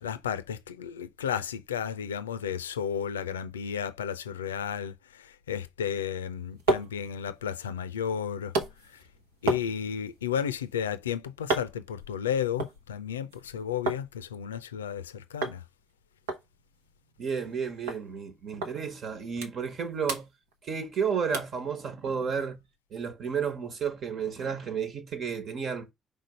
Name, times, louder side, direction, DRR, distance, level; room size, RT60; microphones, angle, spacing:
voice 1, 0.0-8.5 8.9-9.0 9.4-15.6, left 8 dB, 85° left, 0.4 m, -33 dB
sound 1, 6.2-14.1 14.4-15.0 15.4-15.6 15.9-16.0 16.3-17.6 17.9-18.0 18.6-18.7 19.1-19.8 20.0-21.0 21.3-21.6 22.1-22.2, right 3 dB, 80° right, 1.0 m, -34 dB
voice 2, 17.2-20.3 20.6-22.6 22.9-25.9, right 6 dB, 55° right, 1.5 m, -32 dB
5.2 x 3.8 x 5.3 m
figure-of-eight pair, 45°, 0 cm